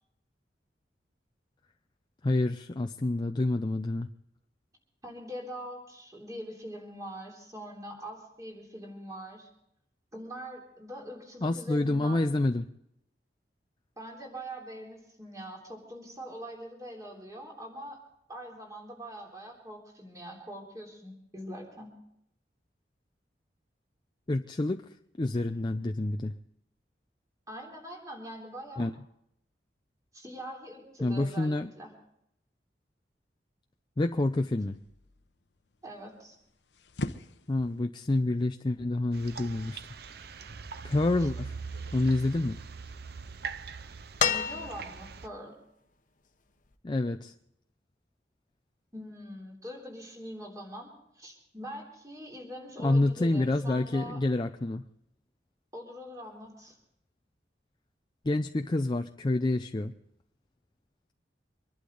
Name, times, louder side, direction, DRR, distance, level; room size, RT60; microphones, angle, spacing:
voice 1, 2.2-4.1 11.4-12.7 24.3-24.9 25.2-26.3 28.8-28.9 31.0-31.7 34.0-34.8 37.5-39.8 40.8-41.5 41.9-42.6 46.8-47.3 52.8-54.8 58.2-59.9, left 2 dB, 25° left, 5 dB, 0.5 m, -28 dB
voice 2, 5.0-9.5 10.1-12.3 14.0-18.0 18.3-21.9 27.5-28.9 30.1-31.9 35.8-36.4 41.2-41.3 44.2-45.6 48.9-54.2 55.7-56.7, equal, 20° right, 0 dB, 3.3 m, -43 dB
sound 1, 34.7-42.2, left 2 dB, 80° left, 0.9 m, -45 dB
sound 2, 39.1-45.3, right 5 dB, 65° right, 0.6 m, -41 dB
sound 3, 44.2-45.2 46.7-46.8, left 7 dB, 50° left, 1.0 m, -29 dB
25.0 x 11.5 x 3.9 m, 0.76 s
head